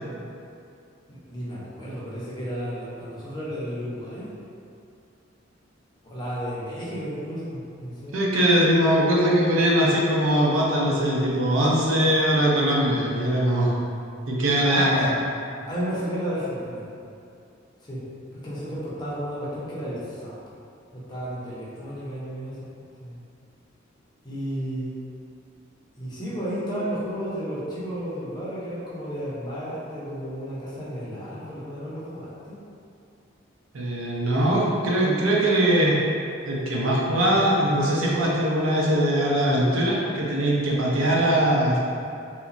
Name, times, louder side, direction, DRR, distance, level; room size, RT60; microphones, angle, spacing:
voice 1, 1.1-4.3 6.0-8.2 14.6-15.1 15.7-16.8 17.8-18.0 18.3-20.3 20.9-22.6 23.0-23.2 24.2-24.9 26.0-32.6, equal, 20° left, -9 dB, 0.6 m, -32 dB
voice 2, 8.1-13.7 14.3-15.1 33.7-36.0 36.5-41.8, right 1 dB, 90° right, -4 dB, 0.5 m, -21 dB
2.8 x 2.1 x 2.5 m, 2.5 s
head